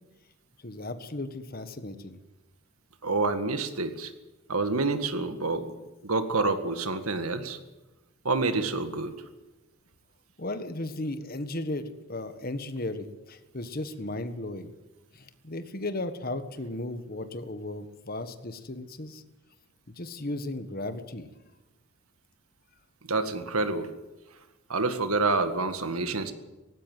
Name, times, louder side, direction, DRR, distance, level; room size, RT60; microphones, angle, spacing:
voice 1, 0.6-2.2 10.4-14.7 15.1-19.2 20.0-21.3, left 2 dB, 40° left, 10 dB, 1.4 m, -35 dB
voice 2, 3.0-4.1 4.5-5.7 6.0-7.6 8.2-9.1 23.0-23.9 24.7-26.3, right 3 dB, 85° right, 9 dB, 1.9 m, -28 dB
18.5 x 16.0 x 9.1 m, 1.1 s
head